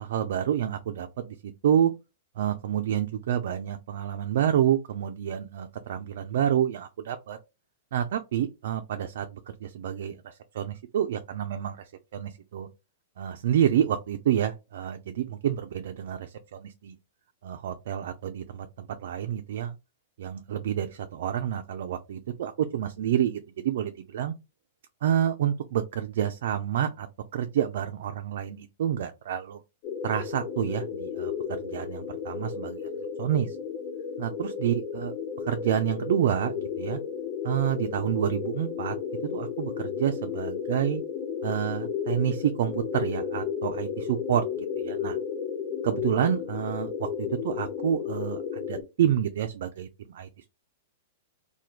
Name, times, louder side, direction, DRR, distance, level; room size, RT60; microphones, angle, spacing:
voice 1, 0.0-1.9 2.4-7.4 7.9-12.7 13.2-16.9 17.4-19.8 20.2-24.3 25.0-27.1 27.3-29.6 30.0-31.3 31.6-32.9 33.2-33.6 34.2-35.1 35.4-37.0 37.4-39.0 39.3-41.0 41.4-45.2 45.8-48.4 48.7-50.4, right 10 dB, 70° right, 0.3 m, -28 dB
sound 1, 29.8-48.8, left 7 dB, 40° left, 0.6 m, -33 dB
3.0 x 2.2 x 2.4 m
hypercardioid pair, 140°, 0 cm